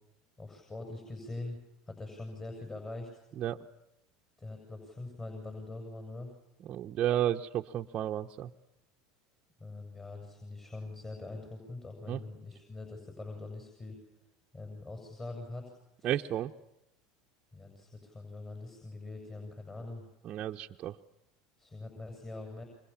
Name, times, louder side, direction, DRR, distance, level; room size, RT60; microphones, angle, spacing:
voice 1, 0.4-1.6 1.9-3.1 4.4-6.3 9.6-14.0 14.5-15.7 16.0-16.1 17.5-20.1 21.6-22.6, left 2 dB, 20° left, 3 dB, 7.3 m, -43 dB
voice 2, 6.6-8.5 12.1-12.2 16.0-16.5 20.2-21.0, right 11 dB, 45° right, 0 dB, 1.0 m, -32 dB
30.0 x 25.5 x 7.3 m, 0.85 s
hypercardioid pair, 95°, 2 cm